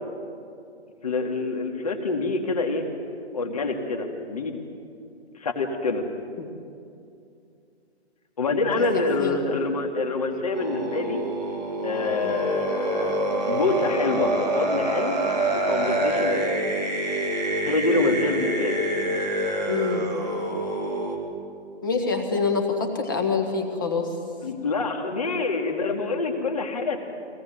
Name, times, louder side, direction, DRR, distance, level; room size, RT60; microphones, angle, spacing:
voice 1, 1.0-2.9 3.3-4.5 5.3-6.0 8.4-11.2 11.8-15.2 15.5-16.6 17.7-18.8 24.4-27.1, left 3 dB, 35° left, 4 dB, 2.4 m, -26 dB
voice 2, 8.7-9.4 12.2-12.3 19.7-20.1 21.8-24.2, left 4 dB, 20° left, 4 dB, 1.5 m, -26 dB
sound 1, 10.5-21.1, right 1 dB, 5° right, 0.7 m, -26 dB
24.0 x 18.5 x 9.3 m, 2.5 s
hypercardioid pair, 175°, 33 cm